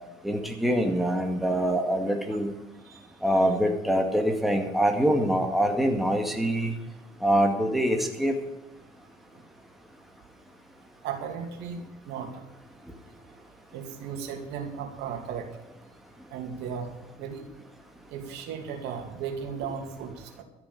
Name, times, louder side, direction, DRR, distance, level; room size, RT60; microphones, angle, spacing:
voice 1, 0.2-2.5 3.2-6.7 7.2-8.3, equal, ahead, 3 dB, 2.1 m, -24 dB
voice 2, 11.0-12.4 13.7-15.5 16.3-17.4 18.1-20.4, right 7 dB, 90° right, 4 dB, 2.5 m, -36 dB
13.0 x 7.1 x 8.6 m, 1.1 s
cardioid pair, 110°, 17 cm